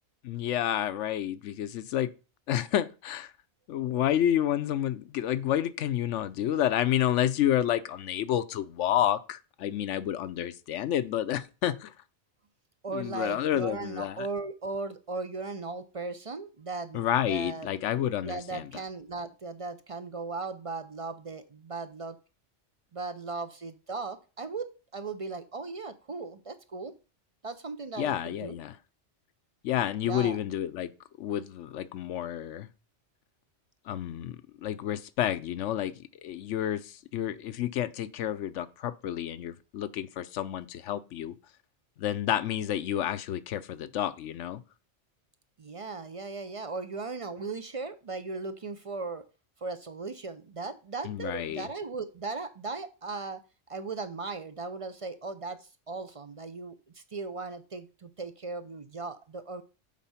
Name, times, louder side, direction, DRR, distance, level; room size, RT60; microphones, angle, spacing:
voice 1, 0.2-2.1 2.5-3.3 3.7-11.9 12.9-14.3 16.9-18.7 28.0-28.7 29.6-30.9 31.2-32.7 33.9-41.3 42.0-44.6 51.0-51.7, left 11 dB, 80° left, 1.0 m, -30 dB
voice 2, 12.8-17.7 18.2-22.2 22.9-26.9 27.4-28.6 30.0-30.4 45.6-49.2 49.6-53.4 53.7-59.6, right 3 dB, 40° right, 0.5 m, -37 dB
7.4 x 4.6 x 5.6 m
omnidirectional pair, 1.2 m